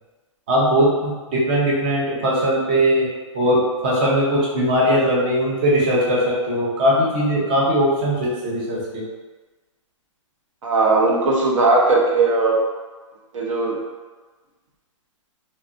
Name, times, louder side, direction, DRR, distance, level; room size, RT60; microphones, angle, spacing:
voice 1, 0.5-3.1 3.3-9.0, equal, 15° right, -5 dB, 0.4 m, -19 dB
voice 2, 10.6-12.6 13.3-13.8, right 3 dB, 70° right, -2 dB, 0.7 m, -18 dB
2.6 x 2.3 x 2.4 m, 1.3 s
hypercardioid pair, 170°, 17 cm